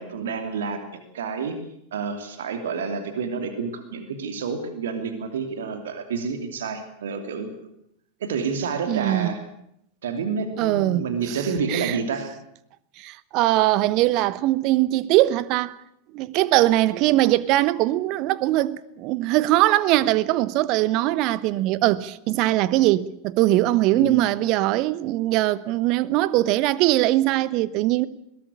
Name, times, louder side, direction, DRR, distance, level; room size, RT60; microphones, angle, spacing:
voice 1, 0.0-1.5 1.9-7.5 8.2-9.4 10.0-12.3 23.9-24.3, right 5 dB, 60° right, 2.8 m, -29 dB
voice 2, 8.9-9.3 10.6-11.4 11.7-12.0 13.0-15.7 16.1-28.1, right 16 dB, 40° right, 1.0 m, -21 dB
21.0 x 18.0 x 8.5 m
figure-of-eight pair, 90°, 0 cm